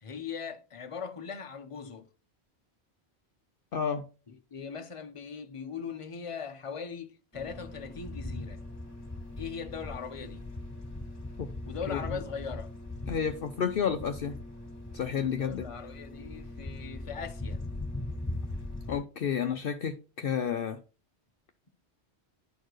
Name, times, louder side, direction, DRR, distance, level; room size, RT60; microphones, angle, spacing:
voice 1, 0.0-2.1 4.3-8.6 9.4-10.5 11.7-12.7 15.3-17.6, left 6 dB, 30° left, 0.9 m, -40 dB
voice 2, 3.7-4.0 11.4-11.5 11.9-12.0 13.1-14.4 14.9-15.6 18.9-20.8, left 7 dB, 60° left, 0.8 m, -31 dB
Tiny Birds, 7.3-19.0, left 2 dB, 15° left, 2.0 m, -40 dB
11.5 x 4.4 x 3.1 m
omnidirectional pair, 1.1 m